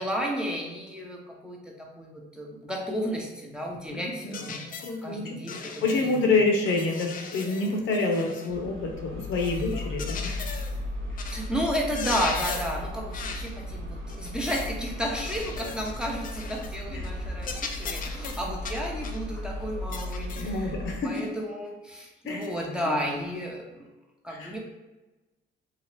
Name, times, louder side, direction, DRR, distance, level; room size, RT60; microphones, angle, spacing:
voice 1, 0.0-4.6 5.0-6.3 11.2-23.9 24.2-24.6, equal, 5° right, -2 dB, 0.6 m, -33 dB
voice 2, 3.9-4.3 4.8-10.4 16.9-17.0 20.4-21.3 22.2-22.5 24.3-24.5, left 3 dB, 80° left, 1 dB, 0.7 m, -28 dB
sound 1, 4.3-5.0 5.5-6.2 6.7-8.5 9.3-10.8 11.2-11.5 11.8-12.8 13.1-13.5 14.1-14.8 15.2-16.8 17.0-17.2 17.4-19.2 19.9-20.6 21.1-21.3 22.4-22.5, left 5 dB, 45° left, 0.4 m, -38 dB
sound 2, 8.5-21.0, left 1 dB, 80° right, 0.6 m, -36 dB
2.7 x 2.4 x 3.2 m, 1.1 s
cardioid pair, 90°, 20 cm